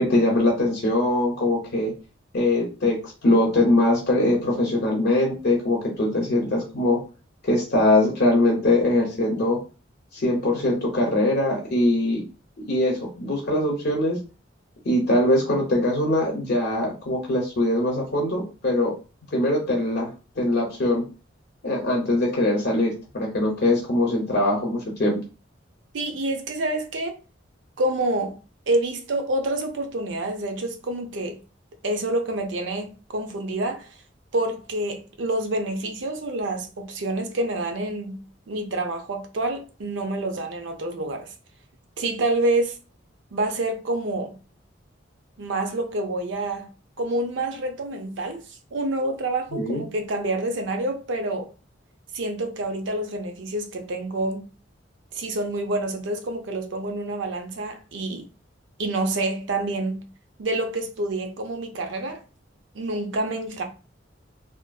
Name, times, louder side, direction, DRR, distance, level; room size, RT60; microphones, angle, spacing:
voice 1, 0.0-1.9 2.3-7.0 7.4-9.6 10.1-12.2 12.7-14.2 14.8-18.9 19.3-20.1 20.4-21.1 21.6-25.2 49.5-49.8, left 1 dB, 55° left, 0.6 m, -22 dB
voice 2, 25.9-27.2 27.8-28.4 28.7-31.4 31.8-33.9 34.3-38.2 38.5-41.3 42.0-42.8 43.3-44.3 45.4-46.7 47.0-48.4 48.7-51.5 52.1-54.5 55.1-58.2 58.8-60.1 60.4-62.2 62.7-63.6, right 2 dB, 75° right, 0.5 m, -27 dB
2.5 x 2.5 x 2.2 m
head